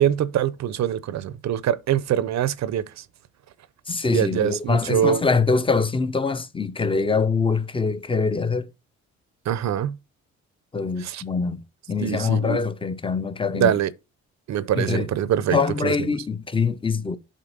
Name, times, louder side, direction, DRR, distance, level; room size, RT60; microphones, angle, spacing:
voice 1, 0.0-3.0 4.1-5.2 9.5-10.0 11.0-11.2 12.0-12.6 13.5-13.9 14.5-15.9, right 10 dB, 65° right, 0.7 m, -24 dB
voice 2, 3.9-8.7 10.7-13.7 14.8-15.1 15.5-17.2, left 4 dB, 15° left, 0.8 m, -24 dB
7.5 x 4.1 x 5.4 m
cardioid pair, 90°, 30 cm